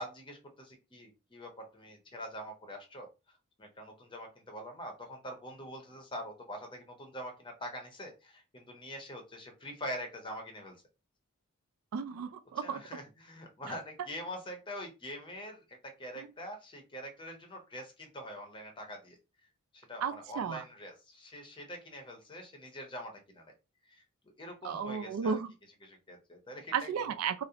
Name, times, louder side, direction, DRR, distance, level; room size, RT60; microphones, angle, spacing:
voice 1, 0.0-10.8 12.6-19.2 19.7-23.5 23.9-24.0 24.4-25.4 25.8-27.1, equal, 25° left, 0.6 m, -44 dB
voice 2, 11.9-12.8 16.2-16.3 20.0-20.6 24.6-25.5 26.7-27.4, right 6 dB, 70° right, 0.3 m, -34 dB
2.4 x 2.0 x 2.7 m
head